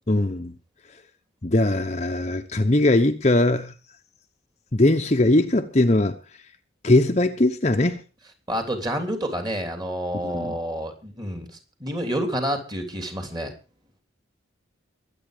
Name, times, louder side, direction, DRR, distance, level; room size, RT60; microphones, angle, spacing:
voice 1, 0.1-0.5 1.4-3.7 4.7-6.2 6.8-8.0 10.2-10.6, left 2 dB, 35° left, 0.9 m, -20 dB
voice 2, 8.5-13.5, equal, 20° right, 3.2 m, -29 dB
23.0 x 8.7 x 5.1 m
head